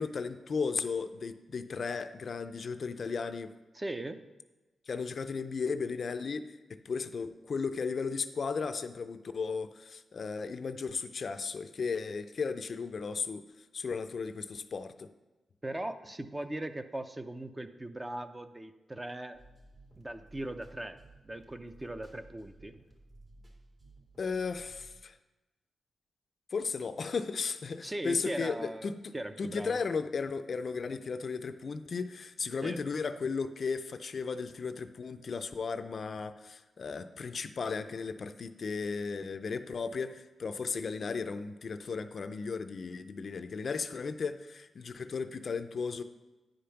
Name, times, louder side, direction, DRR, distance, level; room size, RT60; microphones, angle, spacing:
voice 1, 0.0-3.5 4.9-13.5 13.7-15.1 24.2-25.1 26.5-29.0 29.4-46.0, left 5 dB, 55° left, 10 dB, 0.5 m, -35 dB
voice 2, 3.7-4.2 15.6-19.4 20.0-22.8 27.8-29.8 32.6-32.8, right 1 dB, 20° right, 8 dB, 0.5 m, -39 dB
sound 1, 19.3-25.0, right 2 dB, 45° right, 2.3 m, -56 dB
10.0 x 5.2 x 5.7 m, 1.1 s
cardioid pair, 90°, 0 cm